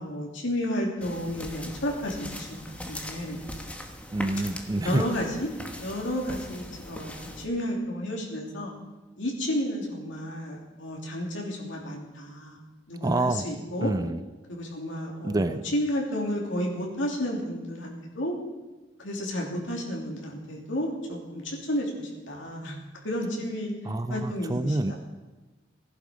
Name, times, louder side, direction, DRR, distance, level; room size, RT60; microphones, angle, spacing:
voice 1, 0.0-2.6 2.9-3.4 4.8-5.5 5.8-8.7 9.2-12.6 12.9-13.9 14.5-18.3 19.0-22.8 23.0-23.7 24.1-25.0, left 1 dB, 80° left, -1 dB, 3.0 m, -32 dB
sound 1, 1.0-7.5, equal, 5° left, 1.2 m, -40 dB
voice 2, 4.1-5.0 13.0-13.5 13.8-14.2 15.2-15.6 23.8-25.0, right 2 dB, 20° right, 11 dB, 0.4 m, -27 dB
17.0 x 11.5 x 5.1 m, 1.2 s
head